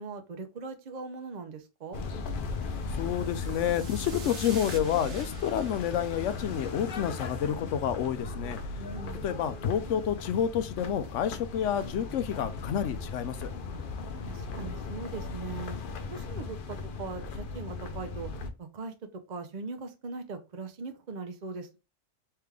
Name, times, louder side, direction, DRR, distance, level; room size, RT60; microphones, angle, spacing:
voice 1, 0.0-2.0 8.8-9.2 13.7-13.8 14.2-15.8 16.1-18.3 18.6-18.9 19.3-21.8, right 4 dB, 50° right, 0.6 m, -40 dB
sound 1, 1.9-18.5, left 4 dB, 55° left, 0.7 m, -37 dB
sound 2, 2.8-7.3, right 4 dB, 75° right, 1.4 m, -47 dB
voice 2, 3.0-8.6 9.2-13.5, left 9 dB, 85° left, 0.9 m, -29 dB
3.4 x 3.3 x 3.4 m
omnidirectional pair, 1.2 m